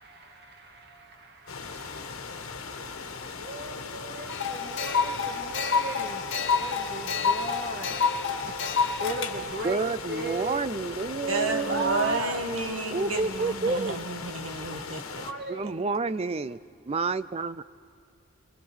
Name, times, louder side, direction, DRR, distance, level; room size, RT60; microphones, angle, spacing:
voice 1, 0.0-2.6 3.4-6.2 6.5-8.0 8.4-8.6 9.0-9.8 10.1-12.5 15.2-15.9, right 2 dB, 50° right, 2.0 m, -37 dB
sound 1, 1.5-15.3, left 5 dB, 85° left, 1.5 m, -39 dB
sound 2, 4.3-9.3, left 5 dB, 60° left, 1.7 m, -28 dB
voice 2, 9.6-12.2 12.9-14.0 14.7-14.8 15.5-16.6 16.9-17.6, right 4 dB, 30° right, 0.4 m, -29 dB
voice 3, 11.3-15.2 15.6-15.7, right 2 dB, 80° right, 1.9 m, -31 dB
24.0 x 22.0 x 6.3 m
head